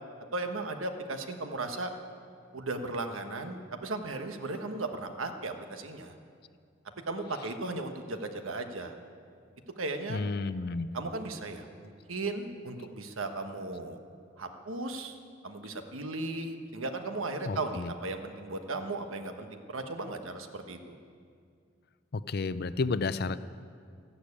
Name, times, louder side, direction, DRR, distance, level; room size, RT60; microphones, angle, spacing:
voice 1, 0.3-1.9 2.5-6.1 7.1-9.0 9.8-10.2 10.9-14.0 14.4-15.2 15.4-21.0, right 2 dB, 85° right, 6 dB, 1.3 m, -36 dB
voice 2, 10.1-10.9 17.5-17.9 22.1-23.4, left 3 dB, 50° left, 14 dB, 0.5 m, -31 dB
14.5 x 11.5 x 8.4 m, 2.2 s
head